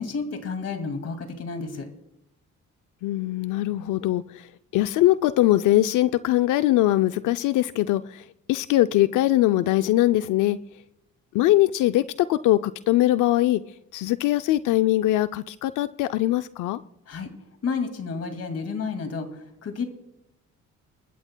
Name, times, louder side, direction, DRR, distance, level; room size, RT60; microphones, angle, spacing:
voice 1, 0.0-1.9 17.1-17.3 17.6-19.8, left 4 dB, 55° left, 2.2 m, -31 dB
voice 2, 3.0-10.6 11.3-13.6 13.9-16.8, left 15 dB, 85° left, 0.5 m, -22 dB
29.0 x 13.5 x 2.2 m
cardioid pair, 90°, 30 cm